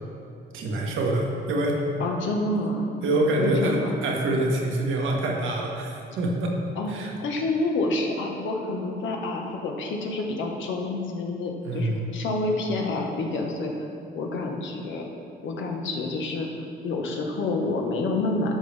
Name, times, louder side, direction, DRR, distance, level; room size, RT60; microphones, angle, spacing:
voice 1, 0.5-1.9 3.0-3.8 4.0-6.5 6.9-7.1 11.6-12.1, right 2 dB, 80° right, 0 dB, 1.4 m, -25 dB
voice 2, 2.0-2.9 3.4-3.9 6.8-6.9 7.2-13.7 14.1-15.1 15.4-16.5 16.8-18.6, left 2 dB, 70° left, 1 dB, 1.2 m, -28 dB
12.0 x 5.6 x 3.4 m, 2.6 s
cardioid pair, 90°, 20 cm